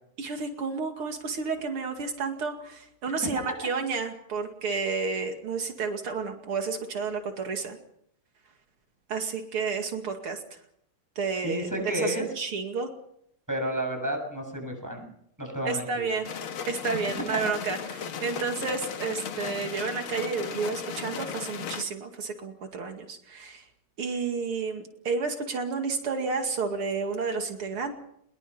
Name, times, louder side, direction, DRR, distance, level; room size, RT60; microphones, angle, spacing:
voice 1, 0.2-7.8 9.1-10.6 11.2-12.9 15.6-16.3 16.7-23.6 24.0-27.9, right 4 dB, 85° right, 4 dB, 3.2 m, -31 dB
voice 2, 11.4-12.3 13.5-15.1 15.4-16.1 18.4-18.5, equal, 10° right, 2 dB, 7.3 m, -31 dB
sound 1, 16.2-21.8, left 7 dB, 75° left, 2.2 m, -36 dB
23.0 x 21.5 x 5.7 m, 0.72 s
omnidirectional pair, 2.3 m